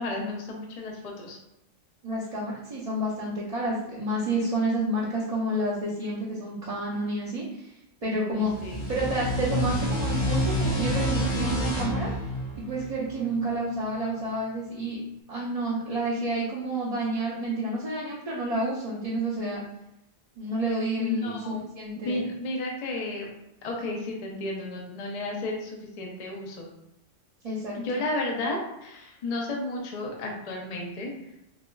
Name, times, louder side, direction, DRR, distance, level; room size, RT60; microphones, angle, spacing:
voice 1, 0.0-1.4 8.2-8.9 21.0-21.6 22.1-23.3 23.6-26.7 27.8-31.1, left 2 dB, 45° left, 0 dB, 0.5 m, -33 dB
voice 2, 2.0-7.7 8.0-12.1 12.6-15.0 15.3-19.6 20.4-22.3 27.4-28.0, right 1 dB, 40° right, -9 dB, 0.6 m, -30 dB
sound 1, 8.4-13.7, equal, 70° left, 1.3 m, -28 dB
4.3 x 2.3 x 2.2 m, 0.86 s
omnidirectional pair, 1.2 m